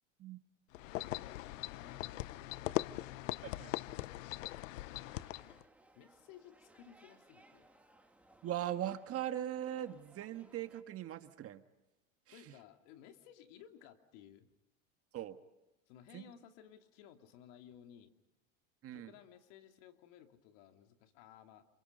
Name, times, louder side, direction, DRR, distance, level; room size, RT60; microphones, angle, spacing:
sound 1, 0.7-5.6, left 16 dB, 80° left, 0.8 m, -40 dB
voice 1, 0.7-2.9 4.8-5.3 6.0-7.7 12.3-14.6 15.9-18.1 18.9-21.7, left 10 dB, 65° left, 5 dB, 2.7 m, -58 dB
sound 2, 5.0-10.8, right 2 dB, 5° right, 2.4 m, -65 dB
voice 2, 8.4-11.6 12.3-12.4 15.1-15.4 16.1-16.3 18.8-19.1, right 11 dB, 40° right, 9 dB, 1.6 m, -40 dB
29.5 x 27.0 x 5.4 m, 0.98 s
supercardioid pair, 120°, 38 cm